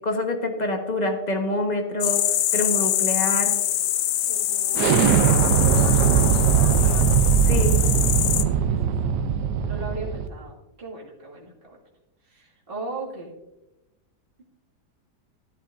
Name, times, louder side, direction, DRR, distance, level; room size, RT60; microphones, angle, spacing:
voice 1, 0.0-2.2 2.5-3.6 7.5-7.8, left 2 dB, 30° left, 4 dB, 1.2 m, -26 dB
sound 1, 2.0-8.4, left 12 dB, 70° left, 1.0 m, -24 dB
voice 2, 4.2-7.1 7.6-7.9 8.4-9.1 9.6-11.8 12.2-13.3, right 2 dB, 35° right, -3 dB, 2.2 m, -37 dB
Explosion, 4.7-10.3, right 8 dB, 80° right, 1.2 m, -20 dB
13.0 x 12.0 x 2.5 m, 0.96 s
omnidirectional pair, 1.8 m